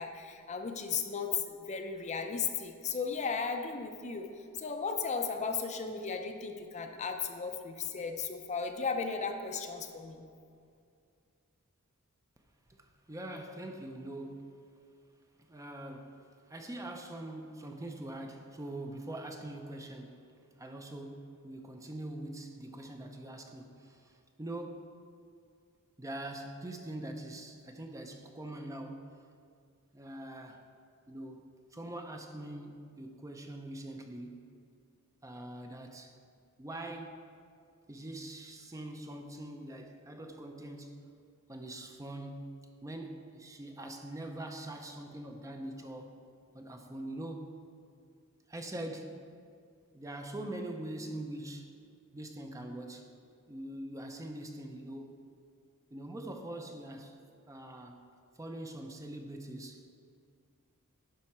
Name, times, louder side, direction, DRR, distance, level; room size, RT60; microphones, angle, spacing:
voice 1, 0.0-4.3 4.6-10.2, left 5 dB, 30° left, 5 dB, 0.5 m, -35 dB
voice 2, 12.7-14.5 15.4-20.2 20.6-24.9 26.0-29.1 29.9-30.6 31.1-31.4 31.7-34.4 35.2-36.1 36.6-37.2 37.9-41.1 41.5-42.5 42.8-46.2 46.5-47.6 48.5-49.2 49.9-51.7 52.1-53.1 53.5-55.2 55.9-57.2 57.5-58.0 58.3-59.8, right 1 dB, 15° right, 4 dB, 0.5 m, -43 dB
10.5 x 5.6 x 4.3 m, 2.3 s
head